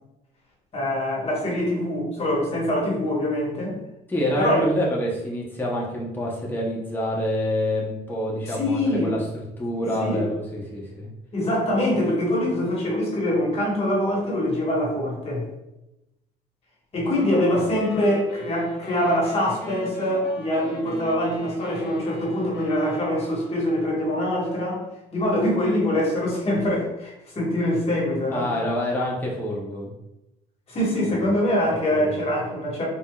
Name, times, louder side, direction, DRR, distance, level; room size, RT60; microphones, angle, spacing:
voice 1, 0.7-3.8 4.4-4.6 8.5-9.1 9.8-10.3 11.3-15.4 16.9-24.8 25.1-28.5 30.7-32.8, left 1 dB, 35° left, -4 dB, 1.4 m, -24 dB
voice 2, 4.1-11.1 28.3-29.9 31.1-31.3 31.9-32.1, left 1 dB, 10° left, -4 dB, 0.8 m, -27 dB
sound 1, 17.2-24.1, left 4 dB, 75° left, 0.9 m, -40 dB
4.7 x 2.6 x 2.3 m, 0.93 s
cardioid pair, 110°, 17 cm